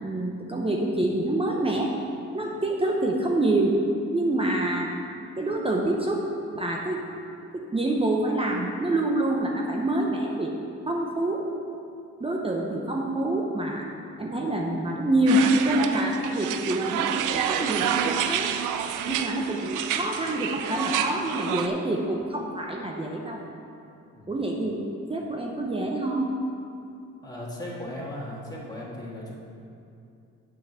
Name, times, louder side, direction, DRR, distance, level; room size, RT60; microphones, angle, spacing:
voice 1, 0.0-1.9 2.3-3.8 4.1-4.9 5.4-6.2 6.5-7.0 7.5-10.5 10.9-11.4 12.2-13.9 14.2-18.5 19.1-23.4 24.3-24.8 25.1-26.4, right 1 dB, 20° right, -1 dB, 0.9 m, -26 dB
sound 1, 15.3-21.7, right 9 dB, 85° right, 0.5 m, -28 dB
voice 2, 27.2-29.3, left 1 dB, 15° left, -5 dB, 2.0 m, -37 dB
7.5 x 5.9 x 6.2 m, 2.6 s
cardioid pair, 90°, 30 cm